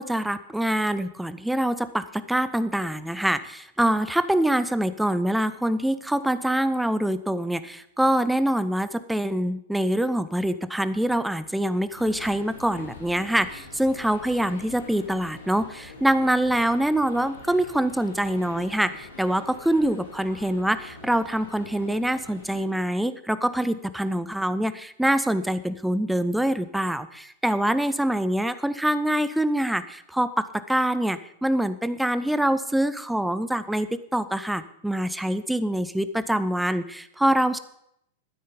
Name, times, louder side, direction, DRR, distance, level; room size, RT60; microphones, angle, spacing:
voice 1, 0.0-37.6, right 1 dB, 5° right, 13 dB, 0.7 m, -25 dB
sound 1, 11.9-22.6, left 2 dB, 75° left, 2.6 m, -45 dB
12.5 x 9.6 x 5.1 m, 0.76 s
figure-of-eight pair, 95°, 0 cm